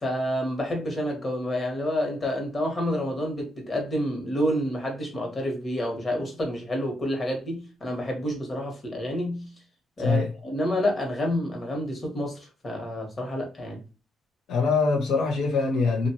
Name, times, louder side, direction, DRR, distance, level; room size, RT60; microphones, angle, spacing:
voice 1, 0.0-9.5 10.0-12.4 12.6-13.8, equal, 30° left, 1.3 m, -29 dB
voice 2, 10.0-10.3 14.5-16.1, left 4 dB, 80° left, 0.8 m, -23 dB
2.7 x 2.5 x 2.9 m
cardioid pair, 90°, 0 cm